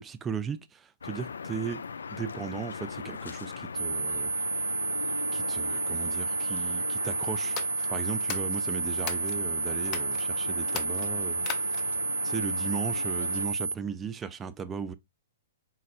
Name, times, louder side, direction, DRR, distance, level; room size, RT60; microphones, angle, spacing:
voice 1, 0.0-1.8 2.1-4.3 5.3-7.6 7.9-11.8 12.2-14.9, right 6 dB, 15° right, 0.5 m, -37 dB
sound 1, 1.0-13.5, left 5 dB, 90° left, 0.4 m, -39 dB
sound 2, 3.7-13.7, right 4 dB, 90° right, 0.3 m, -31 dB
sound 3, 7.4-9.4 9.8-10.2 10.6-12.0, left 11 dB, 35° left, 0.6 m, -39 dB
4.2 x 4.0 x 2.4 m
hypercardioid pair, 135°, 0 cm